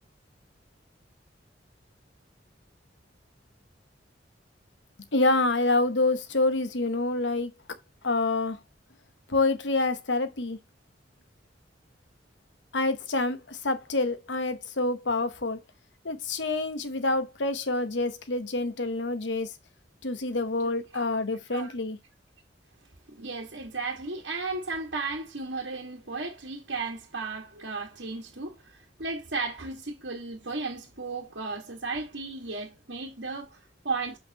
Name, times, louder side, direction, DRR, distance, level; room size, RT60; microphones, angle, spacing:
voice 1, 5.1-7.5 8.0-8.6 9.3-10.6 12.7-15.6 16.0-19.5 20.0-22.0, left 2 dB, 80° left, 1.1 m, -27 dB
voice 2, 23.1-34.2, right 3 dB, 85° right, 1.8 m, -35 dB
7.5 x 5.7 x 2.9 m
head